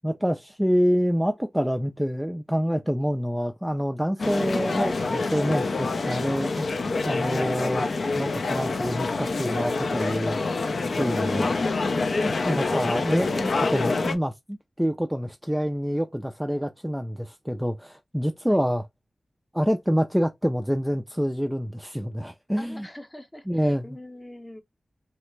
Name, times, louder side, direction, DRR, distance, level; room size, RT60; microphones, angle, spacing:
voice 1, 0.0-7.9 8.1-10.4 10.9-11.5 12.4-18.9 19.5-22.9 23.5-24.0, equal, 5° right, 0.3 m, -27 dB
sound 1, 4.2-14.2, left 3 dB, 65° left, 0.4 m, -26 dB
voice 2, 22.6-24.6, left 1 dB, 20° left, 0.7 m, -44 dB
3.2 x 2.0 x 3.1 m
wide cardioid pair, 70°, 0 cm